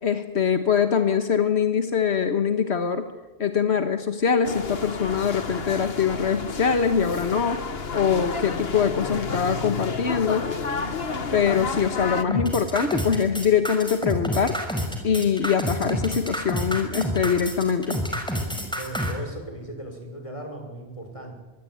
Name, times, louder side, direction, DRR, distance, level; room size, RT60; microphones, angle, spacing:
voice 1, 0.0-3.1 3.4-7.6 7.9-10.5 11.3-14.6 15.0-18.0, left 7 dB, 80° left, 8 dB, 1.6 m, -23 dB
sound 1, 4.4-12.2, left 4 dB, 65° left, 1.8 m, -31 dB
sound 2, 12.3-19.1, equal, 5° left, 5.1 m, -28 dB
voice 2, 18.7-21.3, right 1 dB, 30° left, 3 dB, 6.4 m, -37 dB
23.5 x 23.5 x 9.5 m, 1.3 s
omnidirectional pair, 1.1 m